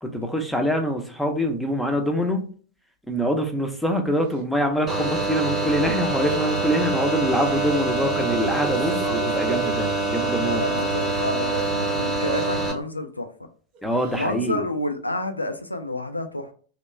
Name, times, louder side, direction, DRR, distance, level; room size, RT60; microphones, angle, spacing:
voice 1, 0.0-2.5 3.1-10.6 13.8-14.7, equal, ahead, 3 dB, 0.6 m, -24 dB
Crying sobbing, 4.3-4.4 4.9-5.1 6.1-6.7 7.4-7.7 8.1-9.8 10.4-10.5 10.8-11.7 12.2-12.4 13.7-14.3, right 6 dB, 45° right, 0.6 m, -37 dB
sound 1, 4.9-12.7, right 3 dB, 15° right, 0.9 m, -25 dB
voice 2, 10.4-13.3 14.1-16.5, left 1 dB, 85° left, 7 dB, 0.4 m, -29 dB
3.0 x 2.2 x 4.1 m, 0.43 s
figure-of-eight pair, 90°, 0 cm